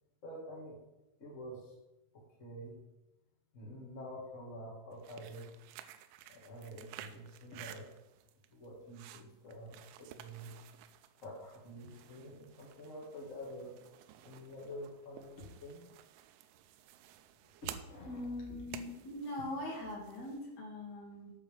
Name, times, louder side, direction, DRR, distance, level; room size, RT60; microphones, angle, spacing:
voice 1, 0.2-0.8 1.2-1.7 2.1-2.7 3.5-5.5 6.3-7.9 8.5-10.5 11.2-13.7 14.2-15.8 17.6-18.3, equal, 75° left, -3 dB, 0.7 m, -47 dB
sound 1, 4.9-20.5, right 12 dB, 90° right, 3.1 m, -54 dB
voice 2, 18.0-21.3, left 1 dB, 45° left, -3 dB, 2.5 m, -42 dB
8.7 x 5.2 x 7.1 m, 0.95 s
omnidirectional pair, 5.5 m